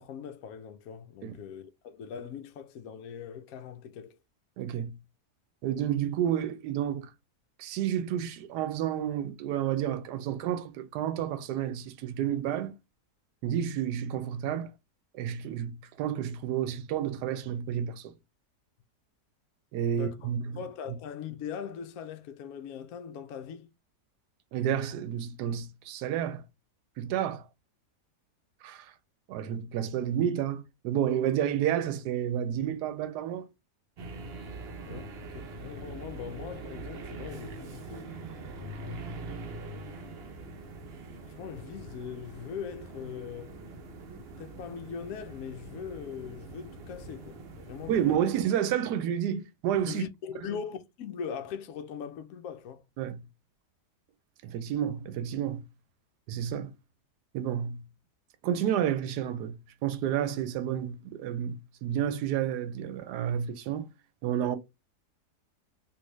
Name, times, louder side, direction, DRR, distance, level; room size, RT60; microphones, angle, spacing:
voice 1, 0.0-4.2 19.9-20.3 20.6-23.7 34.9-38.3 39.9-40.0 41.4-43.6 44.4-48.3 49.9-52.8, left 7 dB, 70° left, 0.9 m, -41 dB
voice 2, 4.6-4.9 5.6-7.1 7.6-12.7 13.4-14.7 15.1-18.1 19.7-20.6 24.5-26.4 27.0-27.5 28.6-28.9 29.3-33.5 34.9-35.0 47.9-50.0 50.4-50.6 53.0-53.2 54.4-55.6 56.3-56.7 57.3-57.8 58.4-63.9 64.2-64.6, right 10 dB, 85° right, 1.2 m, -30 dB
sound 1, 34.0-48.2, right 2 dB, 60° right, 0.6 m, -43 dB
3.2 x 2.5 x 3.1 m
omnidirectional pair, 1.7 m